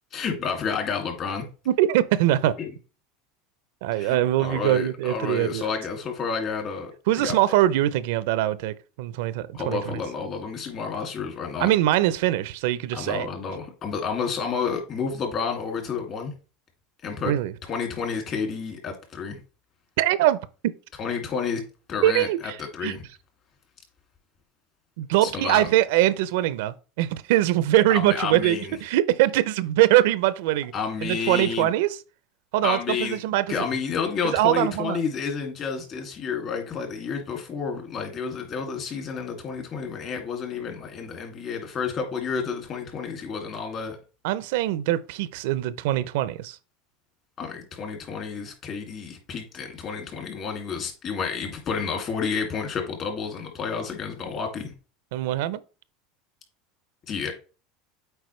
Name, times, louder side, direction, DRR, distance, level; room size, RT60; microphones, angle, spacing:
voice 1, 0.1-1.4 2.6-2.7 4.0-7.4 9.5-11.7 12.9-16.3 17.0-17.3 17.7-19.4 21.0-21.6 21.9-23.0 25.2-25.7 27.9-28.7 30.7-31.7 32.6-33.2 33.5-44.0 47.4-54.7 57.1-57.3, left 5 dB, 40° left, 2.3 m, -30 dB
voice 2, 1.7-2.5 3.8-5.6 7.1-10.0 11.6-13.3 17.2-17.5 20.0-20.7 22.0-23.0 25.0-30.7 31.0-32.0 32.5-33.7 34.2-35.0 44.2-46.6 55.1-55.6, right 14 dB, 75° right, 0.5 m, -23 dB
8.0 x 4.5 x 3.1 m
supercardioid pair, 125°, 0 cm